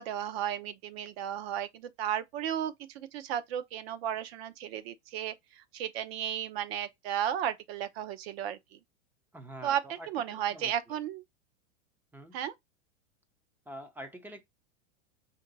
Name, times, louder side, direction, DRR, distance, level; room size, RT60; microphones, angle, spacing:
voice 1, 0.0-8.8 9.6-11.2 12.3-12.5, right 10 dB, 60° right, 0.8 m, -34 dB
voice 2, 9.3-11.0 12.1-12.4 13.7-14.4, right 1 dB, 5° right, 0.5 m, -46 dB
4.4 x 2.7 x 3.9 m
supercardioid pair, 135°, 35 cm